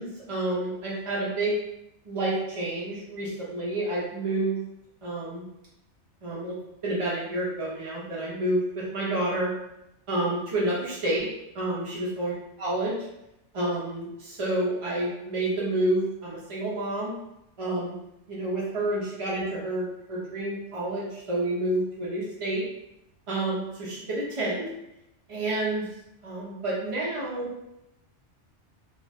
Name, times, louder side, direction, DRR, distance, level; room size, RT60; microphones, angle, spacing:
voice 1, 0.0-1.6 2.1-4.6 5.0-5.4 6.2-6.5 6.8-9.5 10.1-11.3 11.5-12.3 12.6-12.9 13.5-17.1 17.6-18.0 18.3-22.6 23.3-24.7 25.3-25.8 26.2-27.5, right 1 dB, 45° right, -6 dB, 0.4 m, -29 dB
2.5 x 2.2 x 3.2 m, 0.86 s
omnidirectional pair, 1.2 m